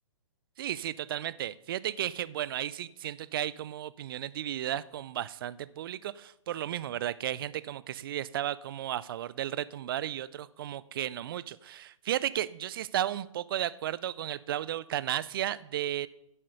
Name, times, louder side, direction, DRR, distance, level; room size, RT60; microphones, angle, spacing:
voice 1, 0.6-16.1, right 12 dB, 45° right, 19 dB, 0.4 m, -34 dB
10.0 x 7.8 x 6.4 m, 0.82 s
hypercardioid pair, 145°, 17 cm